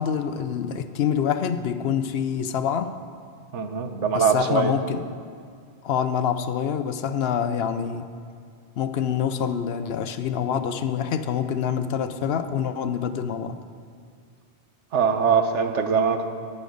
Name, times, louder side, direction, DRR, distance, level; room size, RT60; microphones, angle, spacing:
voice 1, 0.0-3.0 4.1-5.1 5.8-8.1 8.8-13.6, left 8 dB, 65° left, 10 dB, 0.8 m, -26 dB
voice 2, 3.5-4.7 14.9-16.3, right 6 dB, 90° right, 7 dB, 1.2 m, -22 dB
14.5 x 9.9 x 3.9 m, 2.2 s
omnidirectional pair, 1.2 m